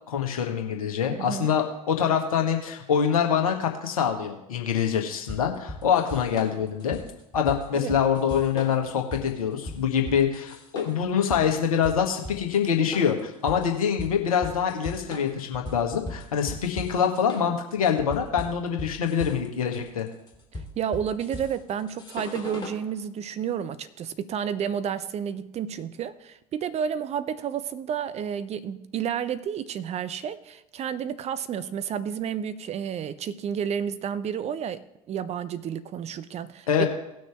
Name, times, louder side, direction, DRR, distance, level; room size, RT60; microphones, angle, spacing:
voice 1, 0.1-7.0 7.3-20.1 36.7-36.9, left 7 dB, 70° left, 1.8 m, -25 dB
voice 2, 1.1-1.5 7.7-7.9 20.8-36.9, right 8 dB, 35° right, 0.7 m, -31 dB
sound 1, 5.3-22.8, left 1 dB, 20° left, 3.0 m, -39 dB
18.5 x 6.3 x 3.5 m
figure-of-eight pair, 70°, 19 cm